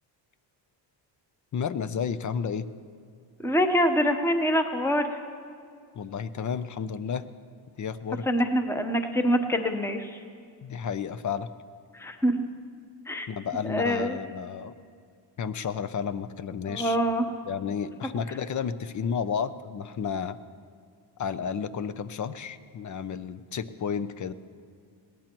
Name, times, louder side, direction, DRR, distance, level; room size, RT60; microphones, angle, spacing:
voice 1, 1.5-2.7 5.9-7.3 7.8-8.3 10.6-11.5 13.3-14.7 15.4-17.0 17.4-20.4 21.2-24.3, left 7 dB, 40° left, 13 dB, 0.6 m, -32 dB
voice 2, 3.4-5.1 8.3-10.1 11.9-12.5 13.1-13.3 13.6-14.2 16.7-17.2, equal, 5° left, 6 dB, 0.9 m, -25 dB
21.5 x 18.0 x 3.0 m, 2.2 s
cardioid pair, 110°, 48 cm